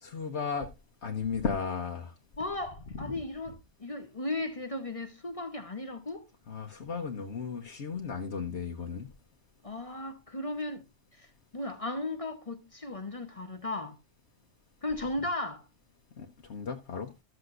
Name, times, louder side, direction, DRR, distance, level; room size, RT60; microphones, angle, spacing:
voice 1, 0.0-0.7 1.0-2.1 6.5-9.1 16.2-17.1, left 5 dB, 65° left, 1.3 m, -35 dB
voice 2, 2.4-6.2 9.6-10.8 11.2-11.3 11.5-13.9 14.8-15.6, left 2 dB, 30° left, 0.9 m, -36 dB
14.0 x 7.9 x 2.5 m
omnidirectional pair, 1.3 m